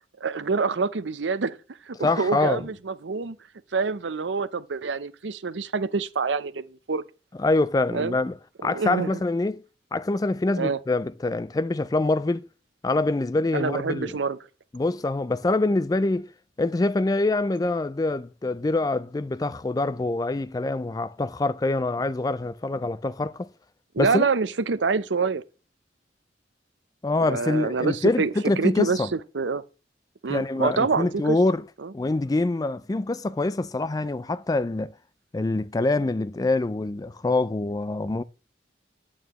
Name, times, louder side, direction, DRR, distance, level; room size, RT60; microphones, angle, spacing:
voice 1, 0.2-1.6 1.9-3.4 3.7-7.0 7.9-8.2 8.7-9.1 10.6-10.8 13.5-14.4 23.9-25.4 27.3-29.6 30.2-31.4 31.8-31.9, right 4 dB, 85° right, 0.6 m, -26 dB
voice 2, 2.0-2.7 7.4-9.6 9.9-12.5 12.8-14.2 14.7-16.3 16.6-23.5 24.0-24.3 27.0-29.1 30.3-31.6 31.9-34.9 35.3-38.2, left 2 dB, 20° left, 0.3 m, -25 dB
8.9 x 8.7 x 3.0 m
head